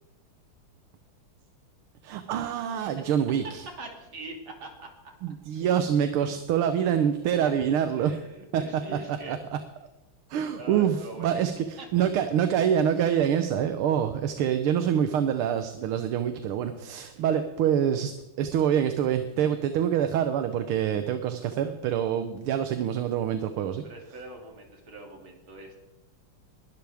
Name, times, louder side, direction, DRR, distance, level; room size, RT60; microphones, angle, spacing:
voice 1, 2.0-3.7 5.2-8.1 8.5-8.6 9.3-9.4 10.3-23.8, right 9 dB, 80° right, 8 dB, 1.7 m, -26 dB
voice 2, 3.8-4.9 6.2-6.4 6.8-7.0 7.4-7.5 8.0-9.4 10.5-11.4 11.8-12.1 17.1-17.4 23.8-25.8, right 2 dB, 65° right, 1 dB, 3.5 m, -42 dB
21.5 x 12.0 x 3.5 m, 0.96 s
omnidirectional pair, 2.4 m